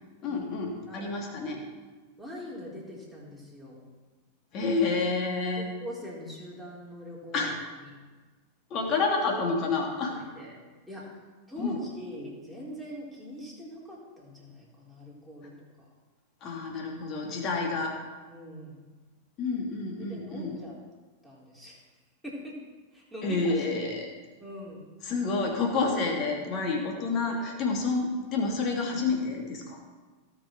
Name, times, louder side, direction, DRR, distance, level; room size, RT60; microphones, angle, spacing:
voice 1, 0.2-1.6 4.5-5.7 7.3-7.5 8.7-10.1 11.6-11.8 16.4-17.9 19.4-20.6 23.2-24.1 25.0-29.8, left 3 dB, 35° left, 0 dB, 2.7 m, -29 dB
voice 2, 0.9-1.3 2.2-3.8 5.6-7.5 7.8-7.9 10.1-10.6 10.9-11.1 11.5-15.9 18.3-18.9 20.0-20.7 21.2-21.8 22.2-22.6 22.9-23.6 24.4-24.9 27.3-27.5, equal, ahead, -5 dB, 3.8 m, -43 dB
18.0 x 6.4 x 4.6 m, 1.3 s
figure-of-eight pair, 90°, 0 cm